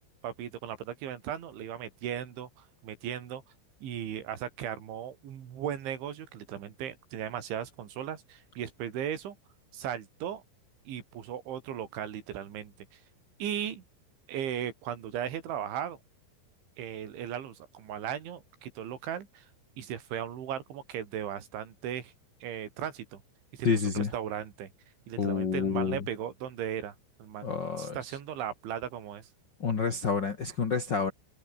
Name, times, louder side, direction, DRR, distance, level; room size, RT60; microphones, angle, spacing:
voice 1, 0.2-3.4 3.8-9.4 9.7-10.4 10.9-13.0 13.4-13.8 14.3-16.0 16.8-19.5 19.8-22.1 22.4-23.2 23.5-24.7 25.1-27.0 27.2-29.3, right 9 dB, 75° right, 5.4 m, -37 dB
voice 2, 23.6-24.1 25.2-26.0 27.4-28.0 29.6-31.1, left 5 dB, 45° left, 1.4 m, -28 dB
omnidirectional pair, 5.4 m